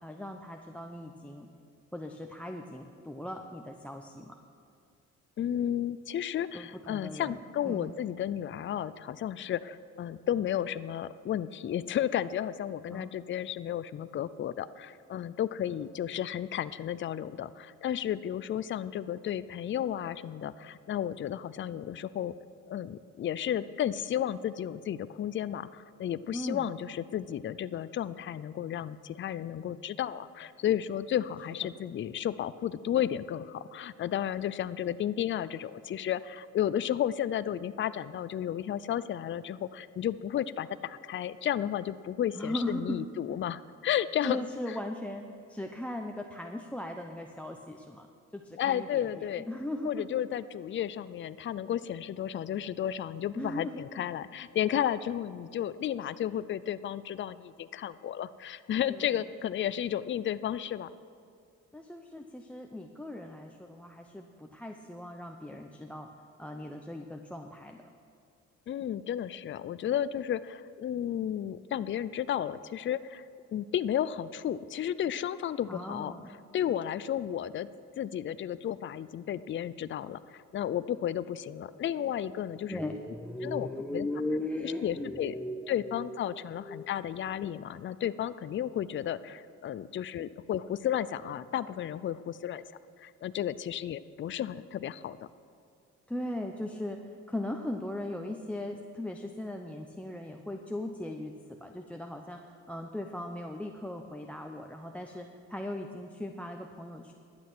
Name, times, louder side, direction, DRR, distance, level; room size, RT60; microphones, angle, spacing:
voice 1, 0.0-1.5 1.9-4.4 6.5-7.4 7.6-7.9 12.9-13.1 26.3-26.7 42.3-43.0 44.2-48.1 48.3-50.2 53.4-54.0 58.9-59.2 61.7-66.1 66.4-67.9 75.7-76.3 82.7-86.2 86.5-86.9 96.1-107.1, left 1 dB, 5° left, 4 dB, 0.7 m, -38 dB
voice 2, 5.4-22.3 22.7-44.8 48.6-49.5 49.8-60.9 68.7-73.2 73.5-76.1 76.5-77.7 78.0-82.8 83.4-84.1 84.6-85.3 85.7-92.6 93.0-95.2, left 10 dB, 40° left, 15 dB, 0.4 m, -33 dB
12.0 x 8.7 x 6.0 m, 2.4 s
cardioid pair, 90°, 30 cm